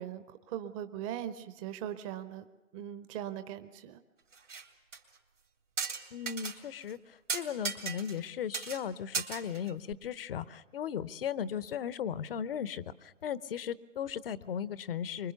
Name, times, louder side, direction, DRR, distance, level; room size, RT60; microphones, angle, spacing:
voice 1, 0.0-2.4 2.7-4.0, right 10 dB, 25° right, 11 dB, 0.8 m, -40 dB
sound 1, 4.3-4.7 4.9-5.0 5.8-6.6 6.9-7.0 7.3-8.3 8.5-8.8 9.1-9.9, right 5 dB, 75° right, 3.2 m, -36 dB
voice 2, 6.1-15.3, left 8 dB, 50° left, 17 dB, 0.8 m, -37 dB
24.5 x 22.5 x 7.0 m, 1.1 s
figure-of-eight pair, 120°, 38 cm